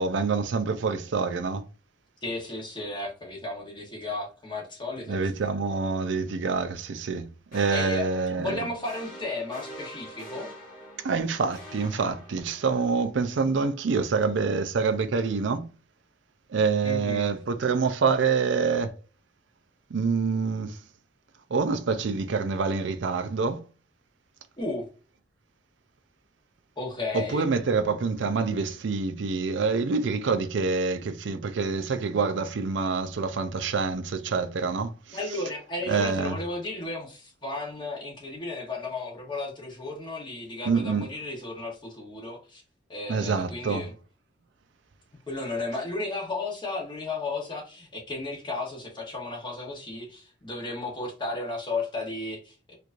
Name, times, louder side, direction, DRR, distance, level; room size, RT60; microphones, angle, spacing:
voice 1, 0.0-1.6 5.1-8.7 11.0-15.7 16.5-18.9 19.9-20.8 21.5-23.6 27.1-35.2 35.9-36.4 40.7-41.1 43.1-43.9, right 4 dB, 65° right, 0.4 m, -26 dB
voice 2, 2.2-5.2 7.7-8.1 8.4-10.5 16.8-17.3 24.6-24.9 26.8-27.5 35.1-42.6 42.9-43.9 45.3-52.7, left 2 dB, 25° left, 0.9 m, -34 dB
sound 1, 7.5-12.8, equal, 45° left, 1.6 m, -45 dB
4.4 x 2.6 x 2.5 m
head